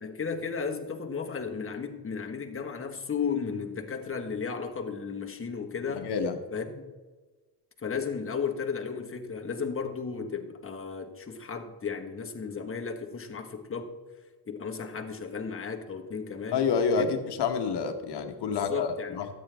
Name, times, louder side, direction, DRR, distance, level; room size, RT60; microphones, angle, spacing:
voice 1, 0.0-6.1 6.5-6.9 7.8-13.9 14.5-16.6 16.9-17.1 18.5-19.3, left 5 dB, 30° left, 3 dB, 1.4 m, -34 dB
voice 2, 5.9-6.4 16.5-19.3, left 5 dB, 75° left, 6 dB, 1.2 m, -28 dB
13.0 x 9.0 x 3.4 m, 1.3 s
cardioid pair, 90°, 41 cm